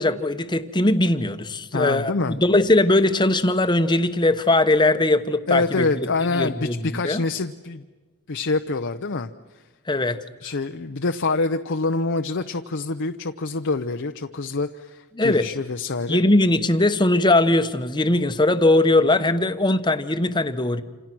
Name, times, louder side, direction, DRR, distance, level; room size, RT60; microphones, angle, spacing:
voice 1, 0.0-5.8 6.3-7.2 9.9-10.2 15.2-15.5 16.1-20.8, left 2 dB, 20° left, 10 dB, 1.0 m, -20 dB
voice 2, 1.7-2.4 5.5-7.9 8.3-9.3 9.5-9.6 10.4-16.2, left 3 dB, 55° left, 7 dB, 0.7 m, -26 dB
27.5 x 27.5 x 6.1 m, 1.3 s
head